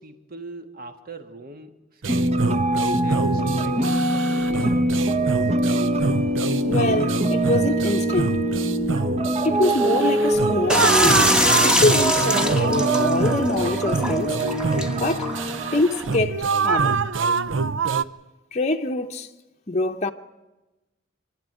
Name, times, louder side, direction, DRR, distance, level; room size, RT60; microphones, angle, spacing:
voice 1, 0.0-2.3 2.9-5.4, right 2 dB, 50° right, 1.6 m, -41 dB
sound 1, 2.0-18.0, right 4 dB, 75° right, 0.7 m, -26 dB
sound 2, 2.1-15.8, right 1 dB, 35° right, 1.2 m, -24 dB
voice 2, 6.6-8.4 9.4-11.3 11.6-14.4 14.9-15.3 15.7-17.0 18.5-19.3 19.7-20.1, left 2 dB, 35° left, 0.8 m, -24 dB
sound 3, 10.7-16.2, equal, 5° right, 1.1 m, -24 dB
27.5 x 12.5 x 9.2 m
head